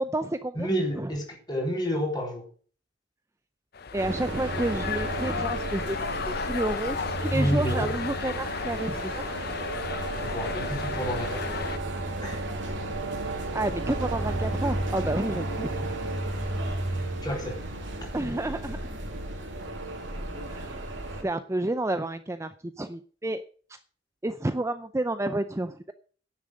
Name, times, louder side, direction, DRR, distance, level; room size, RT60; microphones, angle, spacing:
voice 1, 0.0-0.7 1.0-1.1 3.9-9.3 13.5-15.7 18.1-19.0 20.5-23.4 23.7-23.8 24.2-25.9, right 1 dB, 15° right, 0.5 m, -30 dB
voice 2, 0.6-2.5 7.3-7.9 10.2-11.5 12.2-12.4 17.2-17.6, equal, 25° left, 4.0 m, -29 dB
sound 1, 3.7-11.8, left 5 dB, 55° left, 0.7 m, -34 dB
sound 2, 4.0-21.2, right 2 dB, 85° right, 2.9 m, -33 dB
10.0 x 7.4 x 7.6 m
head